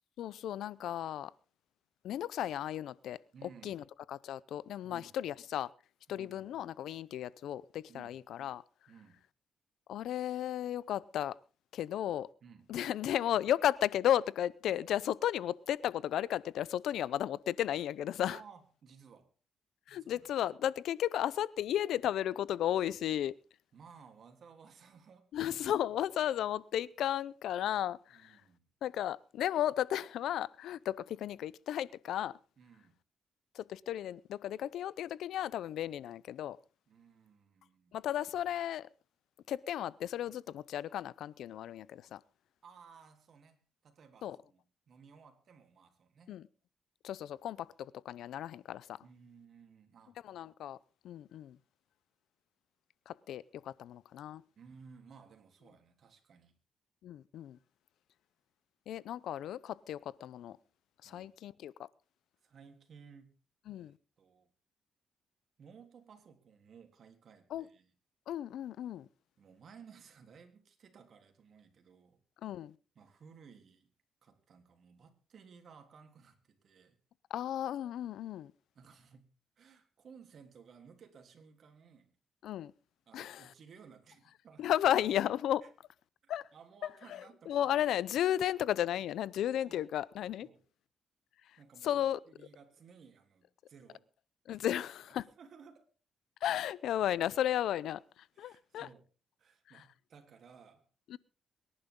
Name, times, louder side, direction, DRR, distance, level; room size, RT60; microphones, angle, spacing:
voice 1, 0.2-1.3 2.0-3.2 3.6-5.7 6.1-8.6 9.9-11.3 11.7-12.3 12.7-18.4 19.9-23.3 25.3-28.4 28.8-32.4 33.5-36.6 37.9-38.9 39.5-42.2 44.2-44.4 46.3-46.4 47.0-49.0 50.2-50.8 51.0-51.6 53.1-54.4 57.0-57.6 58.9-60.6 61.0-61.7 63.7-63.9 67.5-67.6 68.3-69.1 72.4-72.7 77.3-78.5 82.4-82.7 83.1-83.5 84.6-85.6 86.3-86.4 87.5-90.5 91.8-92.2 94.5-95.3 96.4-98.0 98.4-98.9 101.1-101.2, left 11 dB, 80° left, 0.6 m, -34 dB
voice 2, 3.3-3.8 4.8-5.1 6.1-6.5 7.9-8.2 8.9-9.2 12.4-12.7 18.3-19.3 19.9-20.3 23.7-25.7 28.1-28.6 32.6-33.0 36.9-38.0 42.6-46.4 49.0-50.2 54.6-56.5 61.0-61.3 62.4-63.3 63.7-64.5 65.6-67.9 69.4-72.2 73.0-73.9 74.2-77.0 78.8-79.3 79.6-82.1 83.1-84.7 85.6-85.7 86.5-88.1 89.6-89.9 90.4-90.6 91.6-94.1 94.5-94.8 95.1-95.9 98.3-99.1 99.4-100.9, right 6 dB, 60° right, 3.4 m, -58 dB
24.0 x 11.0 x 3.8 m
cardioid pair, 90°, 0 cm